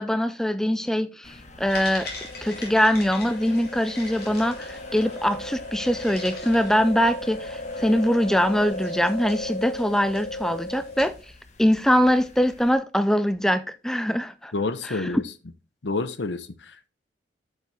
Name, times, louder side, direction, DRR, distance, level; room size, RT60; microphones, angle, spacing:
voice 1, 0.0-2.1 2.4-11.1 11.6-14.5 14.8-15.1, equal, 5° left, 0.3 m, -23 dB
sound 1, 1.2-12.8, left 2 dB, 40° left, 1.1 m, -47 dB
sound 2, 1.7-11.2, left 2 dB, 55° left, 3.2 m, -35 dB
voice 2, 14.5-15.2 15.8-16.9, left 3 dB, 75° left, 0.8 m, -29 dB
8.3 x 6.8 x 3.3 m
head